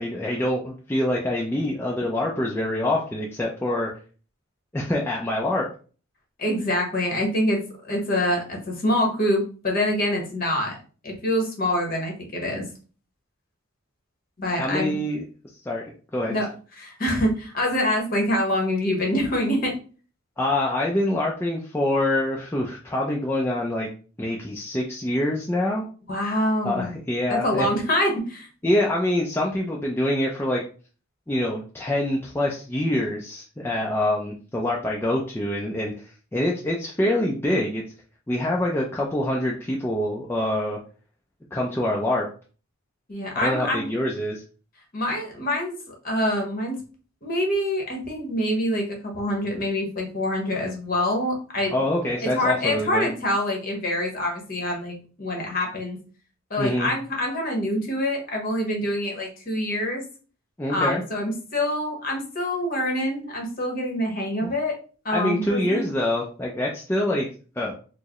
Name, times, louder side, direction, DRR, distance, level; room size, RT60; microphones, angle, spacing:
voice 1, 0.0-3.9 4.7-5.7 14.6-15.2 15.7-16.4 20.4-23.9 24.2-25.9 26.6-27.7 28.6-30.6 31.3-37.8 38.3-40.8 41.5-42.3 43.4-44.4 51.7-53.1 56.6-56.9 60.6-61.0 64.4-64.5 65.1-67.3 67.6-67.7, left 1 dB, 10° left, -2 dB, 0.4 m, -25 dB
voice 2, 6.4-10.8 11.0-12.7 14.4-15.0 16.3-16.5 16.8-19.8 26.1-27.0 27.3-28.5 43.1-43.9 44.9-46.8 47.2-51.8 52.2-56.0 56.5-60.0 60.7-64.7 65.0-65.9, left 1 dB, 40° left, 0 dB, 1.0 m, -25 dB
4.5 x 2.0 x 2.9 m, 0.38 s
head